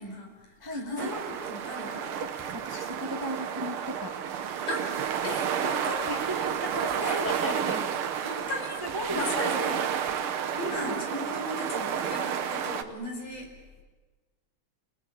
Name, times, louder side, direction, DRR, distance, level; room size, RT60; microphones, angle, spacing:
voice 1, 0.0-2.0 4.7-4.8 5.2-6.5 7.0-7.3 8.2-8.8 9.1-9.8 10.6-13.5, left 1 dB, 70° left, 2 dB, 6.8 m, -37 dB
voice 2, 0.6-1.1 2.2-4.2 6.1-8.0 8.5-9.7 10.6-11.0, equal, 15° right, 4 dB, 0.7 m, -36 dB
sound 1, 1.0-12.8, right 8 dB, 65° right, 1.3 m, -31 dB
28.5 x 20.0 x 8.7 m, 1.3 s
omnidirectional pair, 3.8 m